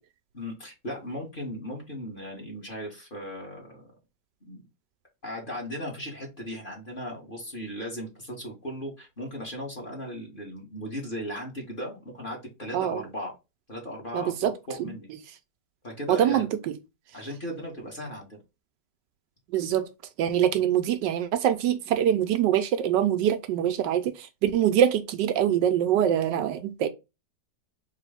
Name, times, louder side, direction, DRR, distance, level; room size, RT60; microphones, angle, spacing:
voice 1, 0.3-3.9 4.4-4.6 5.2-13.3 13.7-15.1 15.8-16.5 17.1-18.4, equal, 30° left, 1.5 m, -37 dB
voice 2, 14.1-14.5 14.8-14.9 16.1-16.7 19.5-19.9 20.2-26.9, right 10 dB, 80° right, 1.2 m, -24 dB
3.7 x 3.2 x 3.4 m
omnidirectional pair, 1.9 m